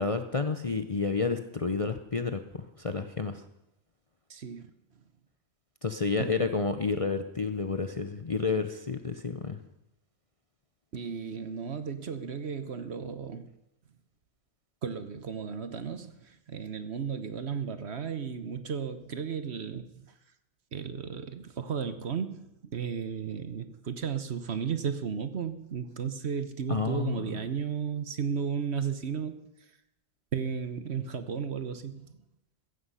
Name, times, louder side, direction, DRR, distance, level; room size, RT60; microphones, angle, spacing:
voice 1, 0.0-3.4 5.8-9.6 26.7-27.3, left 4 dB, 35° left, 0.7 m, -30 dB
voice 2, 4.3-4.7 6.2-6.5 10.9-13.5 14.8-20.1 20.7-29.4 30.3-32.2, right 6 dB, 55° right, 1.2 m, -34 dB
15.0 x 14.5 x 5.6 m
omnidirectional pair, 1.4 m